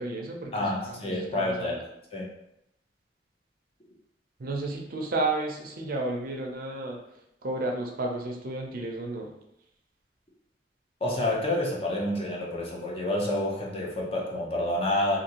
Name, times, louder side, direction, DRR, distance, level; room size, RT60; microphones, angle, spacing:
voice 1, 0.0-1.7 4.4-7.0 7.4-9.3, right 2 dB, 55° right, 0 dB, 0.5 m, -32 dB
voice 2, 0.5-1.8 2.1-2.2 11.0-15.2, left 1 dB, 35° left, -3 dB, 0.7 m, -28 dB
2.6 x 2.6 x 2.8 m, 0.80 s
head